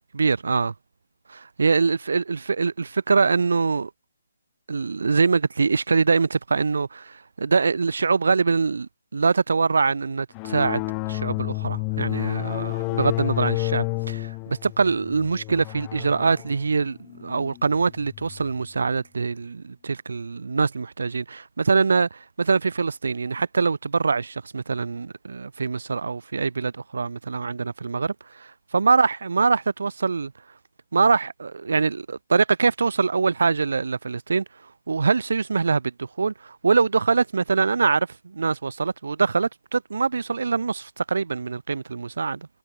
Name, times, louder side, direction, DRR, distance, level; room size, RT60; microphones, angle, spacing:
voice 1, 0.1-0.7 1.3-3.9 4.7-10.8 11.1-30.3 30.9-34.4 34.9-42.5, right 4 dB, 75° right, 1.6 m, -23 dB
sound 1, 10.3-18.5, left 40 dB or more, 20° left, 5.4 m, -30 dB
hypercardioid pair, 155°, 0 cm